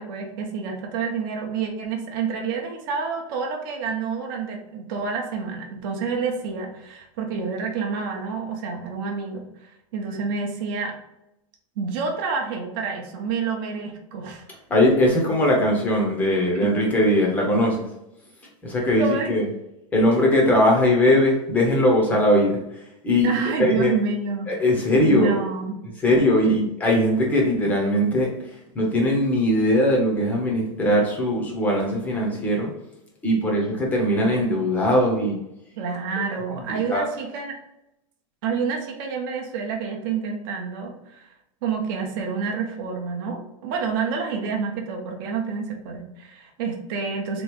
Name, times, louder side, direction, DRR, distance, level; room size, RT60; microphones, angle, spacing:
voice 1, 0.0-10.9 11.8-14.4 16.6-16.7 19.0-19.4 23.2-24.5 25.1-25.8 26.3-26.6 35.8-37.5 38.4-41.3 41.6-47.4, right 5 dB, 40° right, 1 dB, 0.7 m, -28 dB
voice 2, 14.7-17.8 18.6-19.4 19.9-22.6 23.0-23.3 23.6-23.9 24.5-25.4 26.0-28.3 28.7-32.7 33.2-35.4 36.7-37.1, left 1 dB, 10° left, -1 dB, 0.7 m, -20 dB
3.4 x 3.0 x 3.5 m, 0.86 s
supercardioid pair, 175°, 17 cm